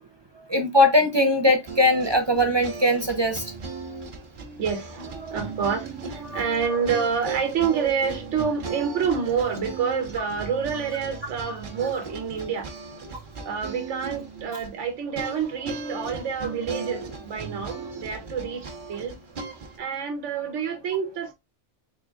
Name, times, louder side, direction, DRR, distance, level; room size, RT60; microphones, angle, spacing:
voice 1, 0.5-3.4, left 1 dB, 30° right, 0.5 m, -20 dB
sound 1, 1.7-19.8, right 4 dB, 50° right, 1.1 m, -37 dB
voice 2, 4.6-12.7 13.4-19.2 19.8-21.3, right 6 dB, 80° right, 1.2 m, -28 dB
4.2 x 3.7 x 2.3 m
omnidirectional pair, 1.2 m